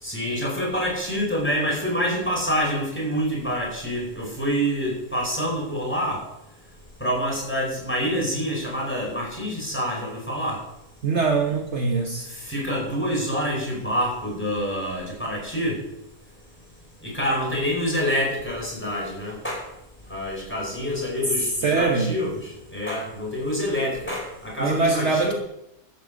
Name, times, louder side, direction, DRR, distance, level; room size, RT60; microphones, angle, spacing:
voice 1, 0.0-6.2 7.0-10.6 12.5-15.8 17.0-19.6 20.1-25.3, equal, 10° left, -3 dB, 5.1 m, -27 dB
voice 2, 11.0-12.3 21.6-22.1 24.6-25.3, right 4 dB, 55° right, 2 dB, 1.5 m, -22 dB
13.0 x 8.2 x 6.4 m, 0.82 s
omnidirectional pair, 1.5 m